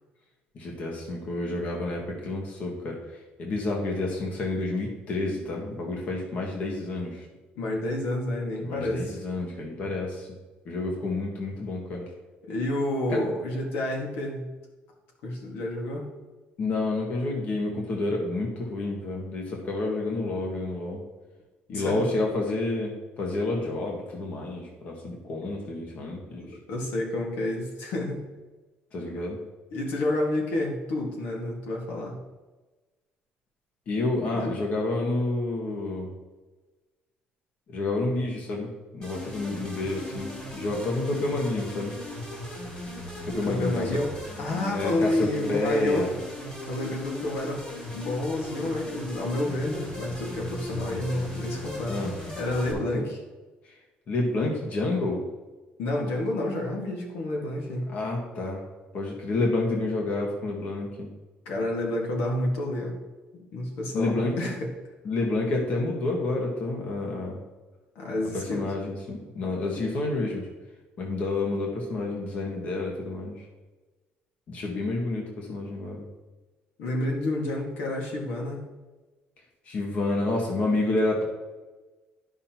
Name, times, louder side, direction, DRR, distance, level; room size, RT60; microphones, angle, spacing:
voice 1, 0.5-3.0 3.4-7.2 8.6-10.3 10.6-12.0 13.1-13.2 16.6-21.0 21.7-26.5 28.9-29.4 33.9-36.1 37.7-41.9 43.2-43.9 44.6-45.2 45.5-46.1 51.9-52.1 52.7-53.1 54.1-55.2 57.9-58.6 58.9-61.1 63.9-64.4 65.0-67.4 68.3-70.5 71.0-73.4 74.5-76.0 79.7-81.2, left 2 dB, 45° left, 0 dB, 1.5 m, -29 dB
voice 2, 7.6-9.2 12.4-14.4 15.2-16.1 21.7-22.1 25.4-25.5 26.4-28.2 29.7-32.2 34.3-34.6 43.4-44.1 44.4-46.1 46.7-47.7 47.9-52.0 52.4-53.2 55.8-57.9 61.4-63.0 63.3-64.7 67.9-68.7 76.8-78.6, left 1 dB, 85° left, 0 dB, 1.8 m, -29 dB
sound 1, 39.0-52.7, left 1 dB, 25° left, 2.6 m, -38 dB
12.0 x 5.6 x 3.0 m, 1.2 s
cardioid pair, 175°, 4 cm